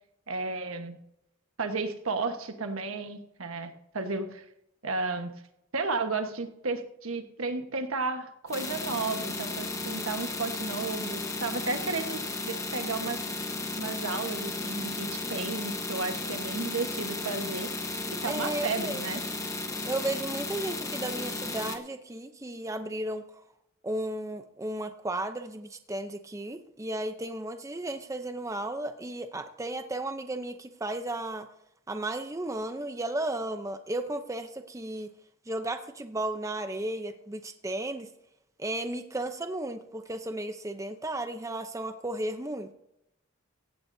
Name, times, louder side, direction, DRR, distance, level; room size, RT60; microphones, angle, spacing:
voice 1, 0.3-1.0 1.6-4.4 4.8-5.3 5.7-13.2 13.8-19.2, right 3 dB, 80° right, 6 dB, 1.3 m, -33 dB
sound 1, 8.5-21.8, left 2 dB, 15° left, 1.1 m, -34 dB
voice 2, 18.3-19.0 19.8-23.2 23.8-31.5 31.9-35.1 35.5-38.1 38.6-42.7, right 1 dB, 15° right, 8 dB, 0.6 m, -34 dB
16.0 x 16.0 x 2.7 m, 0.83 s
head